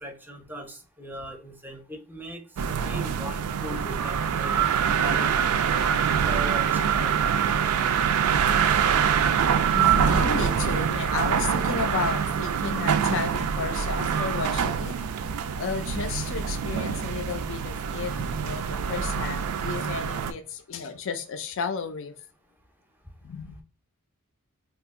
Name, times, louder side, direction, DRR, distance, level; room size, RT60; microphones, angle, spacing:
voice 1, 0.0-4.6 5.0-5.3 6.2-7.4, equal, 10° right, 0.6 m, -39 dB
sound 1, 2.6-20.3, right 7 dB, 80° right, 0.4 m, -25 dB
voice 2, 9.7-15.0 15.6-22.1 23.2-23.6, left 5 dB, 60° left, 0.4 m, -33 dB
2.8 x 2.4 x 3.5 m
head